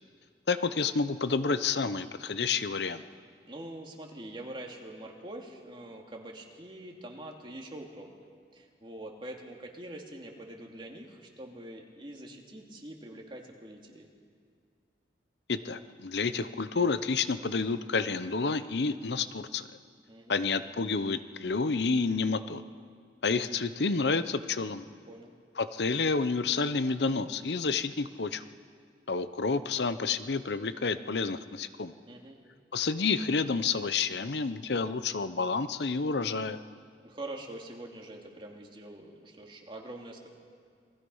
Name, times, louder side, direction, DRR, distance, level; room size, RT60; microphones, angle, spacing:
voice 1, 0.5-3.0 15.5-19.7 20.3-22.6 23.2-24.9 25.6-28.5 29.1-31.9 32.7-36.6, left 4 dB, 70° left, 12 dB, 0.7 m, -29 dB
voice 2, 3.5-8.1 8.5-14.1 20.1-20.4 25.1-25.3 32.1-32.4 37.0-40.3, right 1 dB, 30° right, 0 dB, 2.5 m, -44 dB
27.5 x 20.5 x 5.6 m, 2.1 s
head